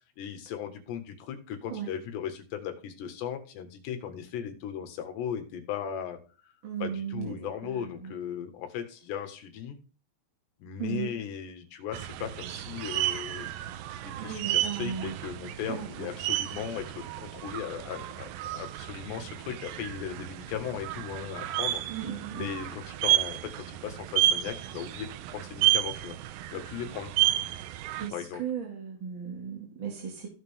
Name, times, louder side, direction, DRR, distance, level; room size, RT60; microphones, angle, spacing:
voice 1, 0.0-6.2 6.8-9.8 10.6-26.2 26.5-27.1 28.1-28.4, left 8 dB, 80° left, 6 dB, 3.8 m, -37 dB
voice 2, 6.6-7.3 7.6-8.1 10.8-11.1 14.2-15.2 15.7-16.1 21.9-22.5 28.0-28.1 28.4-30.3, right 8 dB, 35° right, -1 dB, 2.1 m, -36 dB
sound 1, 11.9-28.1, right 14 dB, 85° right, 2.0 m, -31 dB
15.5 x 6.7 x 3.6 m, 0.36 s
omnidirectional pair, 4.9 m